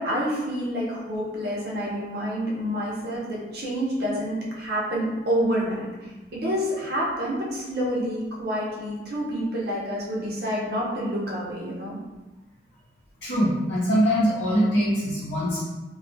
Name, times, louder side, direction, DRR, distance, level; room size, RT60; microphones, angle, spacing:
voice 1, 0.0-12.0, equal, 60° right, -5 dB, 0.7 m, -28 dB
voice 2, 13.2-15.6, equal, 85° left, -11 dB, 0.8 m, -23 dB
2.3 x 2.2 x 2.6 m, 1.1 s
head